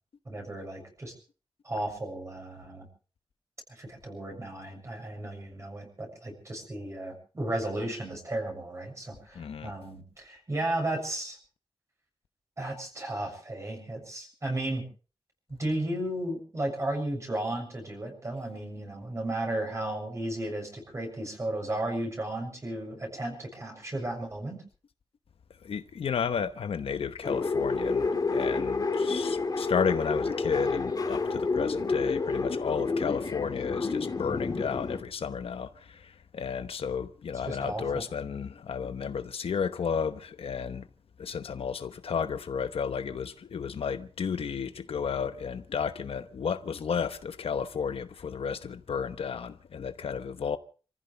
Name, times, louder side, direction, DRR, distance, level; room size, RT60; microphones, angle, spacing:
voice 1, 0.3-1.1 1.6-2.9 3.7-11.4 12.6-14.8 15.5-24.6 37.3-38.0, right 1 dB, 30° right, 7.0 m, -34 dB
voice 2, 9.3-9.7 25.6-40.9 41.2-50.6, left 6 dB, 80° left, 1.0 m, -32 dB
sound 1, 27.2-35.0, left 4 dB, 40° left, 2.5 m, -29 dB
28.5 x 15.0 x 3.4 m
wide cardioid pair, 150°, 10 cm